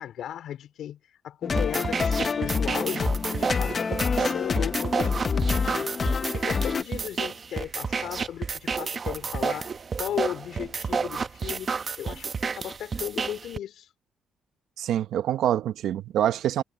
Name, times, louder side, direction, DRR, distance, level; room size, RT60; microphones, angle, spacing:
voice 1, 0.0-5.9 6.2-9.7 10.0-13.9, left 10 dB, 75° left, 4.4 m, -36 dB
sound 1, 1.4-6.8, left 5 dB, 40° left, 1.2 m, -27 dB
sound 2, 1.6-13.6, right 5 dB, 40° right, 1.1 m, -31 dB
voice 2, 14.8-16.6, right 11 dB, 75° right, 1.1 m, -25 dB
cardioid pair, 90°, 0 cm